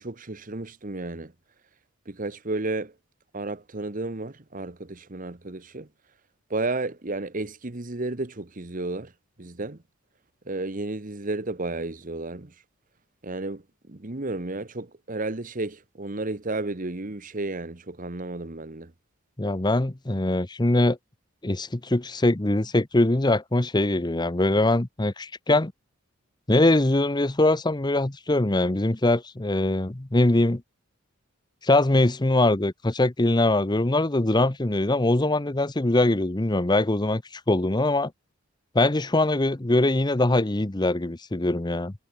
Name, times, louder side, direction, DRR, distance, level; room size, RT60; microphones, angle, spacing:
voice 1, 0.0-1.3 2.1-2.9 3.3-5.9 6.5-9.1 9.4-9.8 10.5-12.5 13.2-13.6 13.9-18.9, right 2 dB, 40° right, 1.2 m, -32 dB
voice 2, 19.4-21.0 21.4-25.7 26.5-30.6 31.6-38.1 38.7-41.9, left 2 dB, 20° left, 0.8 m, -22 dB
head